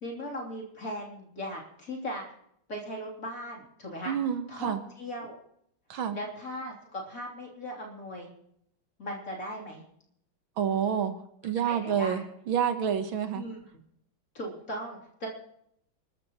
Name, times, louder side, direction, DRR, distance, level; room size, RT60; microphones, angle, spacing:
voice 1, 0.0-2.2 2.7-4.2 4.5-5.4 6.1-8.3 9.0-9.8 11.7-12.2 13.3-13.6 14.3-15.3, equal, 40° left, -2 dB, 3.8 m, -38 dB
voice 2, 4.0-4.8 5.9-6.2 10.6-13.4, right 8 dB, 80° right, 8 dB, 2.0 m, -29 dB
28.5 x 13.0 x 3.1 m, 0.72 s
omnidirectional pair, 2.3 m